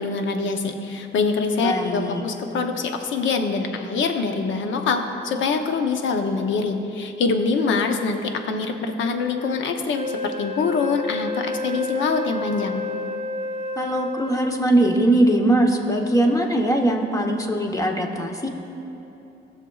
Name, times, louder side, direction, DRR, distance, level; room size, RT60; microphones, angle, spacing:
voice 1, 0.0-12.8, left 4 dB, 70° left, 5 dB, 0.8 m, -24 dB
voice 2, 1.6-2.2 13.8-18.5, right 1 dB, 15° left, 2 dB, 1.0 m, -21 dB
Wind instrument woodwind instrument, 9.9-14.7, left 3 dB, 35° right, 0.6 m, -30 dB
17.5 x 6.6 x 2.4 m, 3.0 s
cardioid pair, 90°, 20 cm